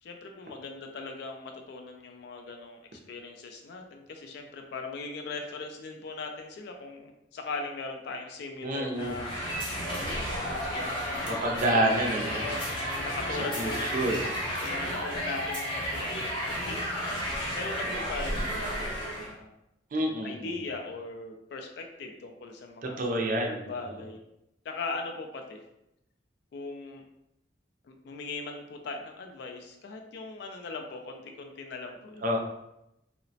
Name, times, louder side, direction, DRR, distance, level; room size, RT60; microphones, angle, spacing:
voice 1, 0.0-9.4 9.9-11.8 12.4-14.2 14.6-17.0 17.2-19.5 20.2-24.2 24.6-25.6 26.5-27.0 27.8-32.4, left 3 dB, 65° left, 3 dB, 0.3 m, -40 dB
voice 2, 8.6-9.2 11.3-12.5 13.6-14.6 19.9-20.5 22.8-23.9 32.2-32.4, right 1 dB, 45° right, 1 dB, 0.4 m, -29 dB
sound 1, 8.9-19.3, equal, 25° left, 0.6 m, -32 dB
2.9 x 2.0 x 2.7 m, 0.86 s
head